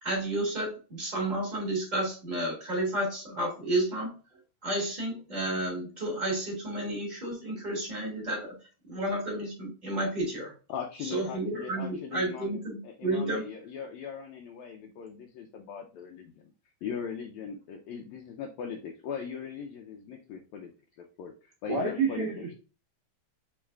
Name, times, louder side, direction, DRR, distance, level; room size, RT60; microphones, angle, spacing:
voice 1, 0.0-4.1 4.6-8.5 8.8-10.5 11.0-13.4, right 1 dB, 20° right, -3 dB, 1.2 m, -31 dB
voice 2, 10.7-12.6 12.8-16.5 16.8-20.7 21.0-22.4, left 7 dB, 85° left, 2 dB, 1.6 m, -40 dB
voice 3, 21.7-22.5, right 5 dB, 75° right, -2 dB, 1.3 m, -29 dB
4.9 x 3.1 x 3.4 m, 0.36 s
omnidirectional pair, 3.8 m